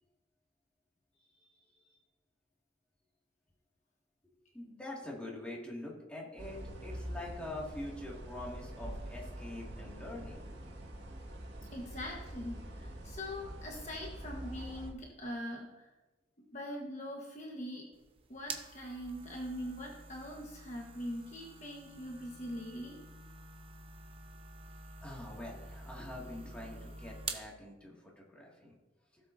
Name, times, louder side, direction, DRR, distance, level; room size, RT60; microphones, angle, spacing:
voice 1, 1.2-1.9 4.5-10.4 25.0-28.7, left 1 dB, 5° left, -4 dB, 2.1 m, -45 dB
sound 1, 6.4-14.9, right 1 dB, 75° right, 1.7 m, -45 dB
voice 2, 11.7-15.9 16.5-17.8 18.3-23.0, equal, 40° left, -1 dB, 1.3 m, -42 dB
sound 2, 17.9-27.5, right 4 dB, 30° right, 0.8 m, -48 dB
16.5 x 7.4 x 2.7 m, 1.1 s
head